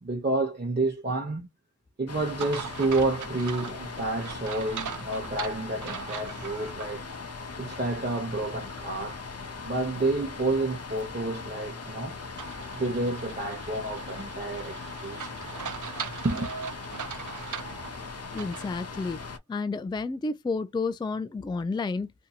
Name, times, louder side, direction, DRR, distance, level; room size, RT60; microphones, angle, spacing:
voice 1, 0.0-1.5 2.0-7.1 7.6-9.2 9.6-12.2 12.7-15.4 16.2-16.5, right 2 dB, 35° right, 0.9 m, -29 dB
sound 1, 2.1-19.4, left 4 dB, 55° left, 0.7 m, -40 dB
sound 2, 2.4-6.9 7.4-7.5 12.4-18.7, right 7 dB, 75° right, 0.5 m, -40 dB
voice 2, 18.3-19.2 19.5-22.1, left 3 dB, 15° left, 0.3 m, -31 dB
2.7 x 2.6 x 2.3 m
cardioid pair, 40°, 30 cm